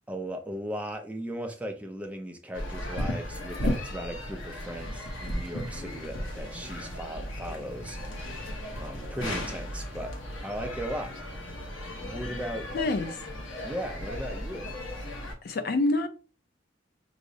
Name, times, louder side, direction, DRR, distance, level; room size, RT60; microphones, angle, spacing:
voice 1, 0.1-8.0 8.7-10.1 10.4-11.1 12.0-12.7 13.6-14.8, equal, 5° right, 0.4 m, -37 dB
sound 1, 2.5-15.3, left 1 dB, 75° left, 0.9 m, -35 dB
voice 2, 12.7-13.2 15.4-16.1, left 2 dB, 55° left, 0.4 m, -27 dB
4.7 x 2.0 x 2.6 m
head